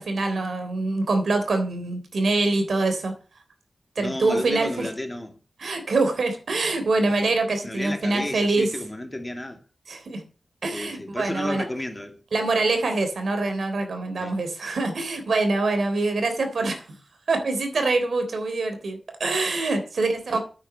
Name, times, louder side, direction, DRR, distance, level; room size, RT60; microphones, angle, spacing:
voice 1, 0.0-3.1 3.9-4.9 5.6-8.7 9.9-10.2 10.6-11.6 12.3-16.8 17.3-20.4, right 3 dB, 90° right, 3.4 m, -24 dB
voice 2, 4.0-5.4 6.9-7.3 7.6-9.6 10.7-12.2 14.2-14.4, left 1 dB, 20° left, 2.4 m, -33 dB
9.4 x 9.2 x 6.9 m
wide cardioid pair, 65°, 0 cm